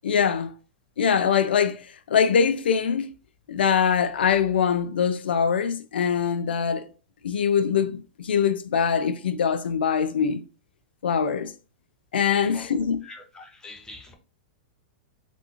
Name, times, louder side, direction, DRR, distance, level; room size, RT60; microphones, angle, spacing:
voice 1, 0.0-0.5 1.0-3.1 3.5-6.9 7.2-10.4 11.0-11.5 12.1-13.0, left 7 dB, 85° left, 0.4 m, -23 dB
voice 2, 12.3-12.7 13.0-14.1, left 3 dB, 10° left, 0.8 m, -44 dB
3.4 x 2.6 x 2.8 m
hypercardioid pair, 120°, 5 cm